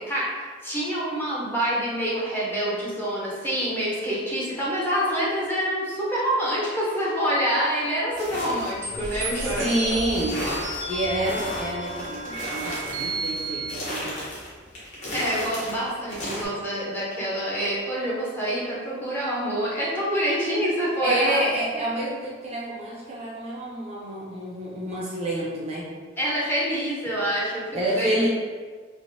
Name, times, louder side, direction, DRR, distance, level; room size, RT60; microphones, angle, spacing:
voice 1, 0.1-9.6 15.1-21.4 21.7-21.8 26.2-27.6 28.0-28.1, equal, 10° left, -7 dB, 0.6 m, -26 dB
sound 1, 8.1-16.5, equal, 40° left, 0.8 m, -35 dB
sound 2, 8.8-13.7, right 2 dB, 80° right, 0.6 m, -33 dB
voice 2, 9.6-10.4 10.9-14.1 21.0-25.9 27.7-28.3, right 1 dB, 35° right, -5 dB, 0.5 m, -28 dB
3.2 x 2.0 x 2.6 m, 1.5 s
head